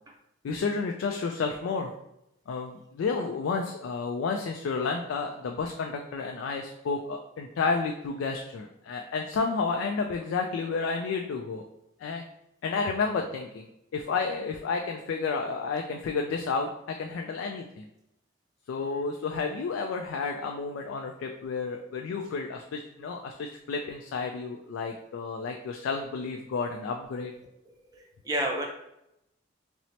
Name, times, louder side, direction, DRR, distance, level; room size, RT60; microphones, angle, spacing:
voice 1, 0.4-1.9 2.5-11.6 12.0-12.2 12.6-13.7 13.9-17.9 18.7-27.3, left 4 dB, 90° left, 2 dB, 0.3 m, -31 dB
voice 2, 27.9-28.6, right 1 dB, 20° right, 0 dB, 0.4 m, -31 dB
4.3 x 2.0 x 2.7 m, 0.83 s
head